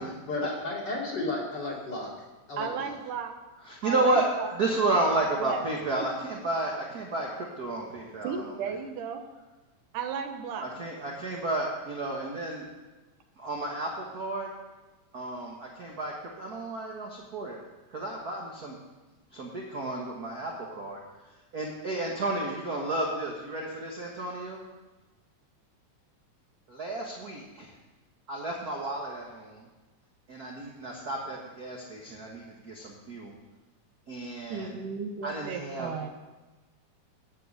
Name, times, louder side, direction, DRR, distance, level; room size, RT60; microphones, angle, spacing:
voice 1, 0.0-3.0, left 2 dB, 35° left, -4 dB, 2.8 m, -34 dB
voice 2, 2.6-3.3 3.8-4.6 5.4-5.6 8.2-9.2 9.9-10.7 34.5-36.1, right 6 dB, 85° right, 6 dB, 2.6 m, -34 dB
voice 3, 3.6-4.3 4.5-8.5 10.6-12.6 13.4-14.5 15.1-17.6 17.9-18.8 19.3-21.0 21.5-24.6 26.7-27.7 28.3-29.6 30.3-33.3 34.1-34.7 35.2-35.9, right 2 dB, 50° right, -1 dB, 1.1 m, -32 dB
10.5 x 9.0 x 6.6 m, 1.2 s
omnidirectional pair, 3.7 m